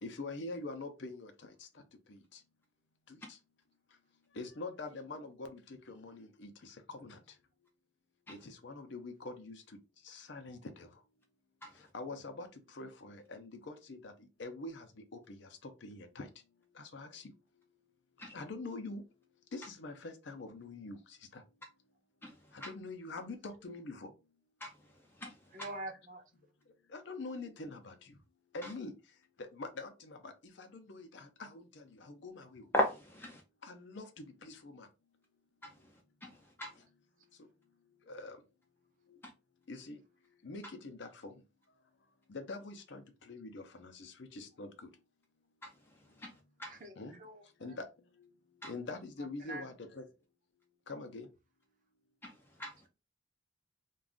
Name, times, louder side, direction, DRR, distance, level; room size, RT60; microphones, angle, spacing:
voice 1, 0.0-1.3 1.6-1.7 2.1-2.2 3.1-3.2 4.3-7.2 8.3-9.6 10.0-10.9 11.9-14.1 14.4-14.9 15.1-16.3 16.8-17.2 18.3-19.0 19.5-21.0 21.3-21.4 22.5-24.1 26.9-28.1 28.5-28.9 29.4-30.3 30.6-32.7 33.6-34.9 38.1-38.4 39.7-40.0 40.4-41.3 42.3-44.9 47.0-47.2 47.6-47.9 48.6-50.0 50.9-51.3, left 3 dB, 60° left, 7 dB, 0.6 m, -45 dB
voice 2, 22.2-22.7 24.6-25.7 28.6-28.7 32.7-33.4 35.6-36.8 45.6-46.8 48.6-48.7 52.2-52.8, left 1 dB, 10° left, 2 dB, 0.4 m, -39 dB
voice 3, 25.5-26.2 46.7-47.7 49.4-49.6, right 2 dB, 40° right, 5 dB, 0.6 m, -45 dB
2.5 x 2.3 x 3.5 m, 0.29 s
head